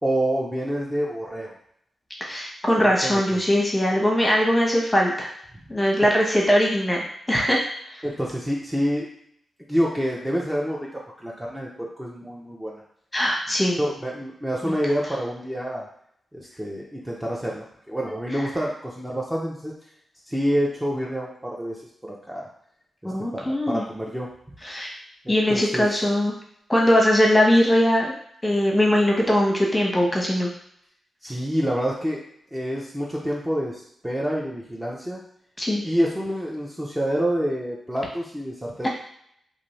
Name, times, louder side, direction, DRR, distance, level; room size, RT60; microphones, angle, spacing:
voice 1, 0.0-1.5 2.8-3.2 8.0-9.1 9.6-12.8 13.8-15.9 16.3-19.7 20.3-22.5 23.0-24.3 25.2-25.9 31.2-32.2 32.5-35.2 35.8-38.9, equal, 10° right, -4 dB, 0.7 m, -27 dB
voice 2, 2.2-5.3 5.7-7.6 7.9-8.0 13.1-13.8 14.6-14.7 23.0-23.8 24.6-24.9 25.3-26.3 26.7-28.1 28.4-30.5 35.6-35.9, equal, 15° left, -2 dB, 1.0 m, -21 dB
2.6 x 2.5 x 3.2 m, 0.69 s
supercardioid pair, 45°, 0 cm